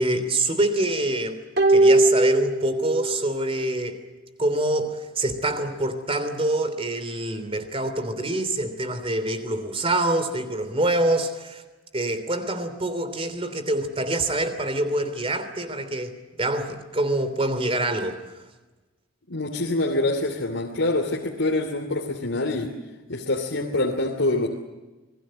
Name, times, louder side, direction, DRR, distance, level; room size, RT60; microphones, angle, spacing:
voice 1, 0.0-1.4 1.7-4.0 4.4-11.6 11.9-18.2, right 1 dB, 30° right, 10 dB, 3.1 m, -25 dB
sound 1, 1.6-3.2 3.5-3.6, right 2 dB, 50° right, 2.7 m, -19 dB
voice 2, 19.3-22.7 23.1-24.5, left 2 dB, 70° left, 0 dB, 2.9 m, -25 dB
27.5 x 21.0 x 7.7 m, 1.2 s
head